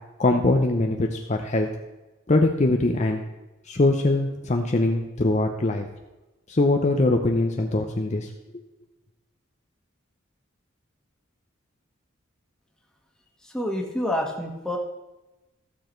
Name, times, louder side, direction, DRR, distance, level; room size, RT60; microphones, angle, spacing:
voice 1, 0.2-1.7 2.3-3.2 3.7-5.8 6.5-8.3, left 2 dB, 35° left, 3 dB, 0.7 m, -22 dB
voice 2, 13.4-14.8, left 1 dB, 5° left, -1 dB, 1.5 m, -28 dB
14.5 x 7.1 x 4.5 m, 1.1 s
head